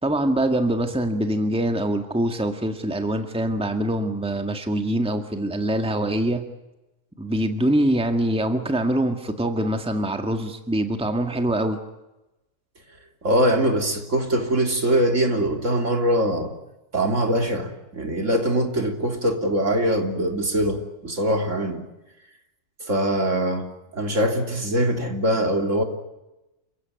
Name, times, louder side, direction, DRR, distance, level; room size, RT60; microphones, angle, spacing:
voice 1, 0.0-6.5 7.2-11.8, right 1 dB, 5° right, 1.8 m, -24 dB
voice 2, 13.2-16.5 16.9-21.8 22.8-23.7 23.9-25.8, right 1 dB, 60° right, 3.5 m, -22 dB
29.0 x 16.0 x 9.5 m
omnidirectional pair, 1.4 m